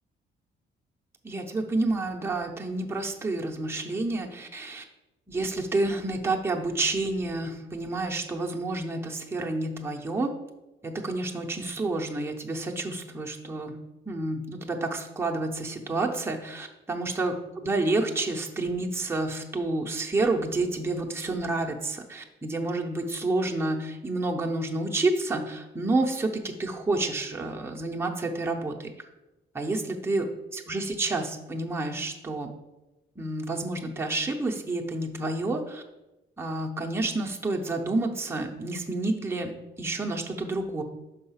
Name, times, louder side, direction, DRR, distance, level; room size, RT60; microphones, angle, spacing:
voice 1, 1.2-4.8 5.3-10.3 10.8-13.7 14.1-28.9 29.5-32.5 33.2-35.8 36.4-39.5 39.8-40.8, right 2 dB, 10° right, 0 dB, 0.8 m, -29 dB
5.6 x 3.8 x 5.6 m, 0.99 s
cardioid pair, 90°, 20 cm